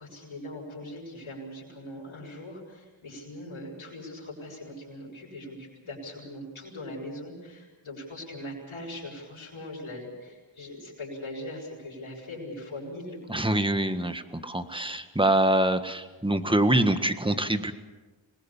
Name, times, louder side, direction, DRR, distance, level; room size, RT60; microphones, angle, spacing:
voice 1, 0.0-13.5, left 1 dB, 75° left, -4 dB, 7.3 m, -41 dB
voice 2, 13.3-17.7, right 1 dB, 10° right, 9 dB, 1.6 m, -25 dB
26.5 x 20.5 x 7.3 m, 1.2 s
wide cardioid pair, 85°, 48 cm